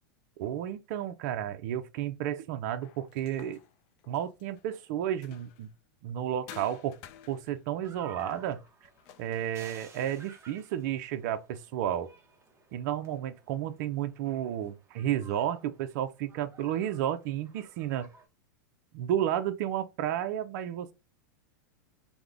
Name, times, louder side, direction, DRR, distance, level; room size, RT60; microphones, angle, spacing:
voice 1, 0.4-3.6 4.1-5.7 6.0-7.0 7.3-8.6 9.2-12.1 12.7-18.1 18.9-20.9, right 11 dB, 55° right, 0.4 m, -32 dB
sound 1, 2.8-5.8 6.5-10.3, left 10 dB, 50° left, 0.5 m, -53 dB
sound 2, 7.8-18.3, right 4 dB, 25° right, 0.8 m, -55 dB
3.6 x 2.1 x 3.4 m
hypercardioid pair, 125°, 11 cm